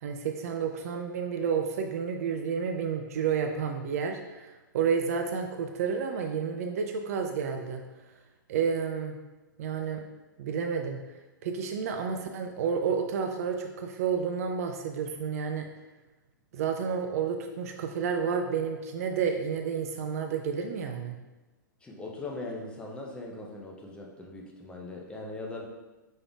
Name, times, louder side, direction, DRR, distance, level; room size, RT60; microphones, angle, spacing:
voice 1, 0.0-7.8 8.5-9.2 9.6-10.0 10.4-11.0 11.4-15.7 16.5-21.2, right 6 dB, 45° right, 5 dB, 0.4 m, -30 dB
voice 2, 21.8-25.7, left 2 dB, 10° left, -1 dB, 0.6 m, -40 dB
5.2 x 3.4 x 2.3 m, 1.1 s
figure-of-eight pair, 110°, 11 cm